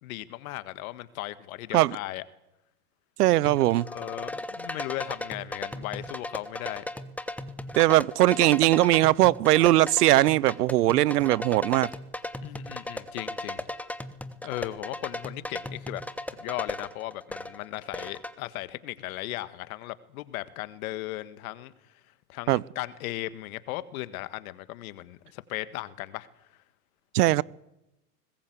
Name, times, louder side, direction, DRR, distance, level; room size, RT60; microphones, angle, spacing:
voice 1, 0.0-2.2 3.8-6.8 12.4-13.7 14.4-16.0 16.3-21.7 22.3-26.3, left 16 dB, 60° left, 1.7 m, -37 dB
voice 2, 3.2-3.9 7.8-11.9 22.5-22.6 27.1-27.4, right 16 dB, 70° right, 0.8 m, -20 dB
sound 1, 3.5-18.3, left 1 dB, 5° left, 1.3 m, -37 dB
24.5 x 20.5 x 8.1 m
hypercardioid pair, 105°, 48 cm